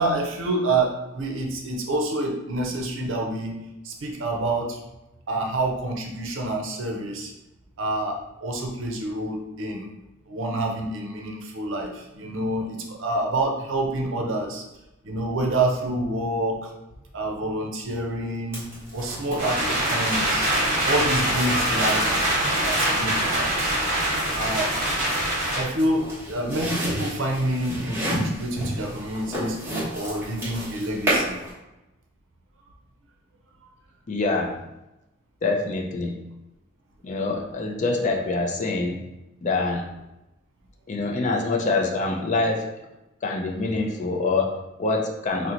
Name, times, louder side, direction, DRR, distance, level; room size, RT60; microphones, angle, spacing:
voice 1, 0.0-3.6 3.8-4.8 5.3-7.3 7.8-9.9 10.3-14.6 15.0-16.7 17.1-18.7 18.9-20.5 20.8-22.2 22.6-23.8 24.3-24.8 25.5-29.6 29.9-31.4, right 1 dB, 70° right, 2 dB, 0.6 m, -27 dB
sound 1, 18.5-31.5, right 1 dB, 10° right, 1.1 m, -33 dB
sound 2, 19.4-25.6, right 1 dB, 45° right, 1.1 m, -24 dB
voice 2, 34.1-34.6 35.4-36.3 37.0-39.0 39.4-39.9 40.9-42.8 43.2-45.5, left 3 dB, 40° left, 2 dB, 0.4 m, -25 dB
2.8 x 2.1 x 3.7 m, 0.95 s
head